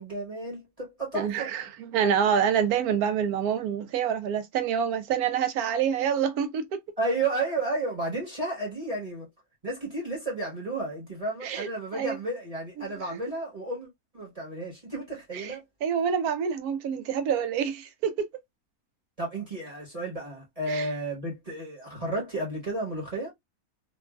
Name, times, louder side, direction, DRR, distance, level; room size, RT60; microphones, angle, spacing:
voice 1, 0.0-1.5 7.0-9.3 9.6-13.9 14.1-15.6 19.2-23.3, right 2 dB, 25° right, 1.2 m, -32 dB
voice 2, 1.1-6.8 11.4-11.7 11.9-12.2 12.8-12.9 15.3-15.5 15.8-18.3 20.7-20.9, right 8 dB, 80° right, 1.1 m, -27 dB
3.0 x 2.4 x 2.2 m
omnidirectional pair, 1.6 m